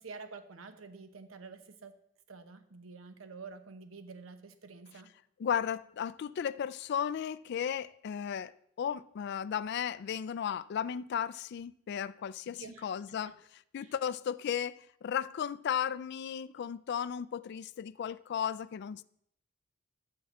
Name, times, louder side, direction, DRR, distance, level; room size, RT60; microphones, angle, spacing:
voice 1, 0.0-1.9 2.3-5.1 12.5-13.3 13.8-13.9, right 4 dB, 85° right, 0.9 m, -49 dB
voice 2, 5.4-19.0, left 8 dB, 55° left, 0.3 m, -35 dB
6.9 x 6.5 x 7.2 m
head